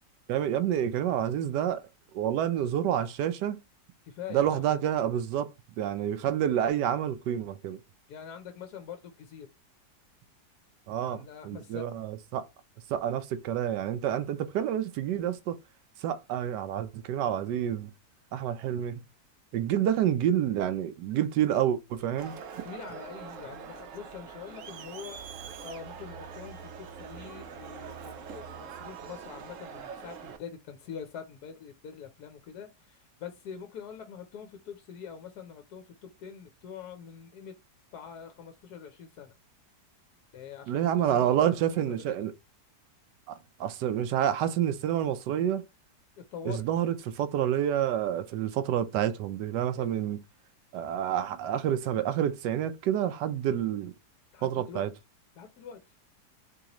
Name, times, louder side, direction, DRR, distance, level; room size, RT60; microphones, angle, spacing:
voice 1, 0.3-1.8 2.1-3.6 4.3-5.5 5.8-7.8 10.9-12.4 12.9-15.6 16.0-17.9 18.3-19.0 19.5-22.3 40.7-42.3 43.3-45.6 46.4-50.2 50.7-53.9 54.4-54.9, right 10 dB, 85° right, 1.2 m, -28 dB
voice 2, 4.0-4.7 8.1-9.5 11.1-11.9 22.6-37.5 37.9-39.3 40.3-42.1 46.2-46.7 49.8-49.9 54.3-54.9 55.4-55.8, left 7 dB, 75° left, 1.1 m, -44 dB
Crowd, 22.2-30.4, right 7 dB, 65° right, 0.8 m, -43 dB
3.9 x 2.8 x 2.9 m
omnidirectional pair, 1.8 m